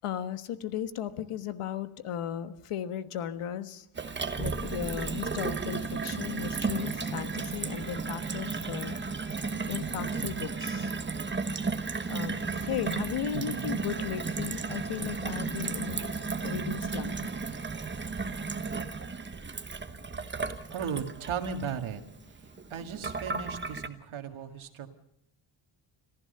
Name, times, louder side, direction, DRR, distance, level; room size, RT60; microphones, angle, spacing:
voice 1, 0.0-3.8 4.4-10.9 12.1-16.2 16.4-17.1, left 10 dB, 90° left, 11 dB, 1.4 m, -36 dB
Gurgling / Water tap faucet / Sink (filling or washing), 4.0-23.9, right 4 dB, 20° right, 1.1 m, -34 dB
voice 2, 13.3-13.7 20.7-22.0 22.7-24.9, right 7 dB, 70° right, 7 dB, 2.0 m, -36 dB
26.5 x 15.0 x 6.7 m, 0.78 s
wide cardioid pair, 170°, 50 cm